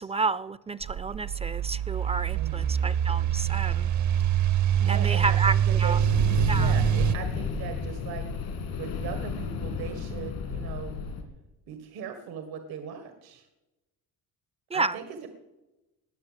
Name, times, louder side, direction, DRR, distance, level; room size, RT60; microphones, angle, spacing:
voice 1, 0.0-3.9 4.9-6.0 6.5-6.8 14.7-15.0, right 3 dB, 20° right, 18 dB, 0.4 m, -30 dB
sound 1, 0.8-7.1, right 10 dB, 55° right, 0.7 m, -25 dB
voice 2, 2.3-2.8 4.8-8.3 8.8-10.9 11.7-13.5 14.7-15.3, right 7 dB, 85° right, 8 dB, 1.7 m, -39 dB
sound 2, 6.0-11.2, left 5 dB, 90° left, 3.0 m, -32 dB
19.5 x 7.5 x 7.4 m, 1.0 s
cardioid pair, 110°, 36 cm